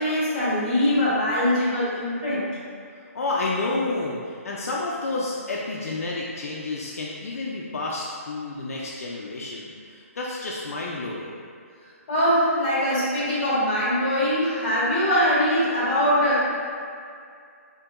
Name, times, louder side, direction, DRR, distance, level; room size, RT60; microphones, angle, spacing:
voice 1, 0.0-2.4 12.1-16.4, equal, 30° left, -8 dB, 1.3 m, -22 dB
voice 2, 3.1-11.3, left 2 dB, 70° left, -4 dB, 0.5 m, -30 dB
4.5 x 2.8 x 2.5 m, 2.3 s
hypercardioid pair, 175°, 8 cm